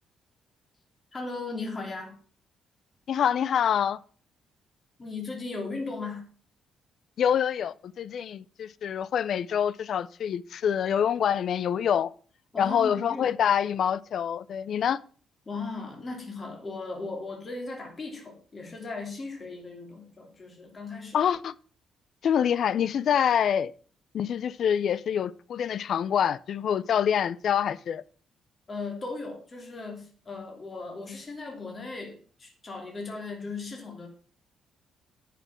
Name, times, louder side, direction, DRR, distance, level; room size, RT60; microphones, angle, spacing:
voice 1, 1.1-2.1 5.0-6.2 12.5-13.3 15.5-21.2 28.7-34.1, left 3 dB, 25° left, 3.0 m, -37 dB
voice 2, 3.1-4.0 7.2-12.1 12.6-15.0 21.1-21.5 22.2-23.7 24.1-28.0, left 8 dB, 55° left, 0.5 m, -26 dB
9.8 x 5.8 x 7.4 m
cardioid pair, 150°, 0 cm